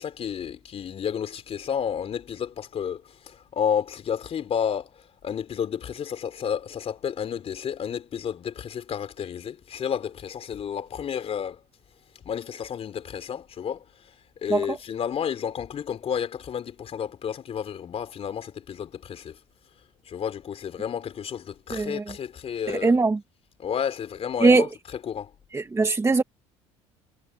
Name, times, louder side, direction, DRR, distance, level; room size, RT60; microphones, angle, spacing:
voice 1, 0.0-4.9 5.2-11.6 12.3-13.8 14.4-19.4 20.1-23.0 23.6-25.3, left 8 dB, 45° left, 3.6 m, -31 dB
voice 2, 21.7-22.0 22.7-23.2 24.4-24.6 25.5-26.2, right 3 dB, 20° right, 2.2 m, -20 dB
supercardioid pair, 85°, 14 cm